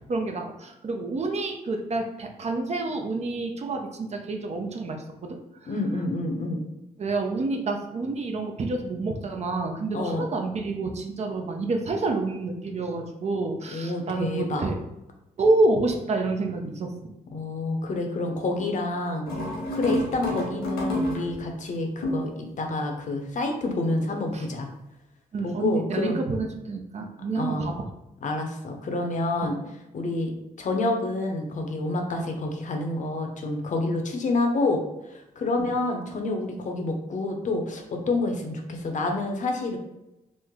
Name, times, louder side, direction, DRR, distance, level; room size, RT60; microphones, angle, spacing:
voice 1, 0.1-5.7 7.0-14.8 15.4-16.9 19.9-20.0 24.3-24.5 25.3-27.9 29.4-29.5 35.6-35.7, right 3 dB, 45° right, 3 dB, 0.5 m, -28 dB
voice 2, 5.7-6.6 9.9-10.2 13.7-14.6 17.3-19.3 19.7-24.7 25.4-26.2 27.4-27.7 28.2-29.6 29.9-30.3 30.6-34.8 35.1-39.8, left 2 dB, 55° left, 3 dB, 0.7 m, -28 dB
sound 1, 19.3-21.5 22.0-22.4, left 1 dB, 85° left, 1.1 m, -29 dB
3.1 x 2.0 x 3.6 m, 0.92 s
supercardioid pair, 65°, 16 cm